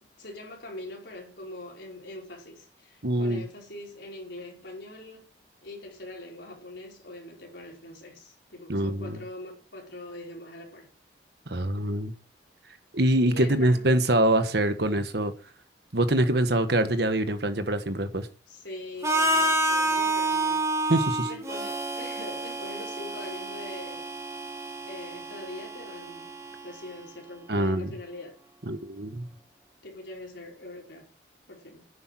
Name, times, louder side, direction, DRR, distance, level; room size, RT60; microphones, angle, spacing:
voice 1, 0.2-5.3 5.6-10.9 13.3-13.9 18.5-20.6 21.2-24.2 24.8-26.3 26.6-28.4 29.8-31.1 31.5-31.9, left 1 dB, 70° left, 5.1 m, -42 dB
voice 2, 3.0-3.4 8.7-9.2 11.5-12.1 12.9-15.3 15.9-18.3 20.9-21.3 27.5-27.9 28.7-29.3, right 1 dB, 60° right, 1.4 m, -24 dB
Harmonica, 19.0-26.9, right 1 dB, 15° right, 1.7 m, -29 dB
10.5 x 8.9 x 7.7 m
head